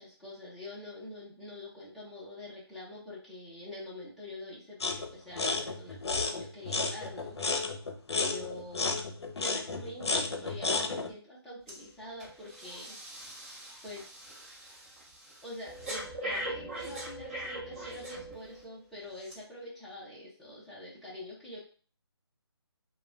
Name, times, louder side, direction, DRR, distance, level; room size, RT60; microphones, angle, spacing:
voice 1, 0.0-7.7 8.2-9.0 9.3-13.0 13.8-14.0 15.4-21.6, left 1 dB, ahead, -10 dB, 0.4 m, -45 dB
sound 1, 4.8-5.1 5.4-11.1, left 3 dB, 75° left, 0.5 m, -32 dB
Breathing, 11.7-11.9 12.2-18.6 19.2-19.3, right 1 dB, 30° right, 0.9 m, -41 dB
2.3 x 2.2 x 3.2 m, 0.41 s
figure-of-eight pair, 155°, 14 cm